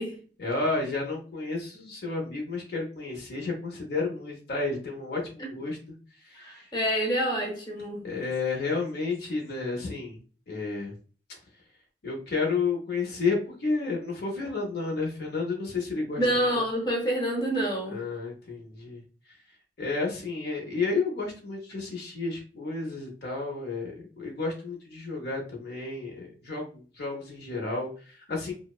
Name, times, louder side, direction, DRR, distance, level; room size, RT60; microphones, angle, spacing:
voice 1, 0.4-5.8 6.1-6.7 8.0-10.2 10.5-10.9 12.0-16.3 16.5-16.6 17.9-19.0 19.3-19.4 19.8-28.5, left 3 dB, 60° left, 0.6 m, -31 dB
voice 2, 6.3-8.1 16.2-18.0, equal, 25° left, 0.8 m, -27 dB
2.7 x 2.0 x 2.3 m
head